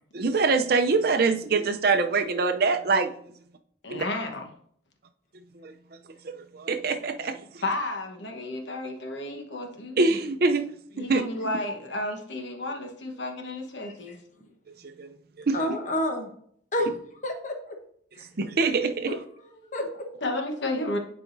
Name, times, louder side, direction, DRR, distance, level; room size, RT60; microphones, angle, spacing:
voice 1, 0.1-3.1 3.9-4.0 5.5-5.7 6.2-7.6 10.0-10.6 11.0-11.2 14.8-15.1 15.5-15.8 18.4-19.2, right 4 dB, 50° right, 0.5 m, -24 dB
voice 2, 3.8-4.5 7.6-10.0 11.0-14.1 20.2-21.0, left 2 dB, 65° left, 1.2 m, -32 dB
voice 3, 15.5-16.3 16.7-16.9 17.2-17.8 19.6-20.1, left 1 dB, 40° left, 1.1 m, -29 dB
10.0 x 4.8 x 2.6 m
head